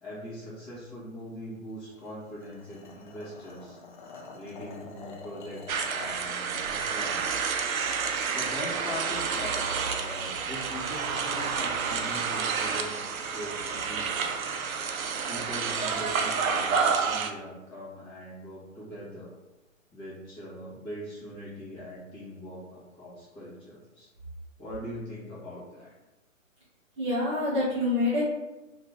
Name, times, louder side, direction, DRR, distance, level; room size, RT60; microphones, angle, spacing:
voice 1, 0.0-3.8 4.3-7.4 8.3-9.7 9.9-14.3 15.3-19.3 19.9-24.1 24.6-25.9, equal, 10° left, -9 dB, 0.7 m, -41 dB
sound 1, 1.9-6.3, left 3 dB, 40° left, 0.4 m, -46 dB
sound 2, 5.7-17.3, right 5 dB, 80° right, 0.5 m, -29 dB
voice 2, 27.0-28.2, left 2 dB, 25° right, -9 dB, 0.5 m, -26 dB
2.5 x 2.5 x 3.2 m, 1.0 s
hypercardioid pair, 140°, 40 cm